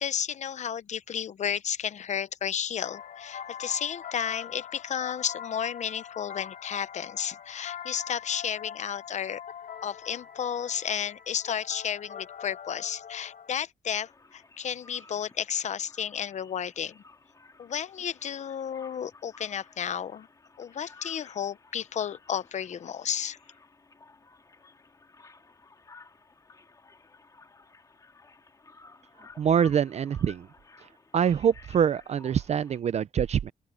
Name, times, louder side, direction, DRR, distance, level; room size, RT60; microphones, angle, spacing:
voice 1, 0.0-9.4 9.8-17.0 17.6-20.3 20.6-23.4, left 8 dB, 55° left, 0.7 m, -32 dB
sound 1, 2.8-13.6, left 8 dB, 70° left, 2.7 m, -43 dB
sound 2, 14.0-32.8, left 4 dB, 25° left, 2.1 m, -55 dB
voice 2, 29.4-30.5 31.1-33.5, right 8 dB, 50° right, 0.4 m, -25 dB
open air
wide cardioid pair, 180°, 15 cm